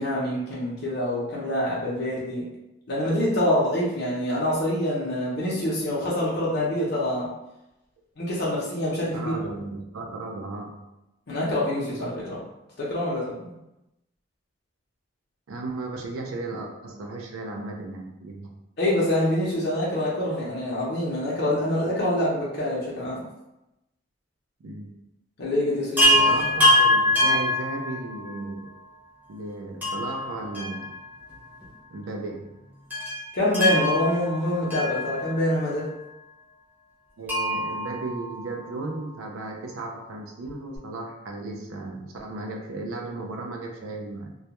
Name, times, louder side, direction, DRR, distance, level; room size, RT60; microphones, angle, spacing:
voice 1, 0.0-2.5 2.9-7.3 8.2-9.3 11.3-12.4 12.8-13.5 18.8-23.2 25.4-26.2 33.3-35.9, left 1 dB, 50° left, -7 dB, 0.6 m, -26 dB
voice 2, 9.1-10.9 15.5-18.5 24.6-25.0 26.1-28.7 29.3-30.9 31.9-32.6 37.2-44.3, right 2 dB, 90° right, 1 dB, 0.4 m, -35 dB
Chime, 26.0-28.4 29.8-31.3 31.6-31.7 32.9-35.6 37.3-38.9 40.5-40.6 40.8-40.9, left 1 dB, 10° right, 0.6 m, -24 dB
2.2 x 2.1 x 2.8 m, 0.92 s
head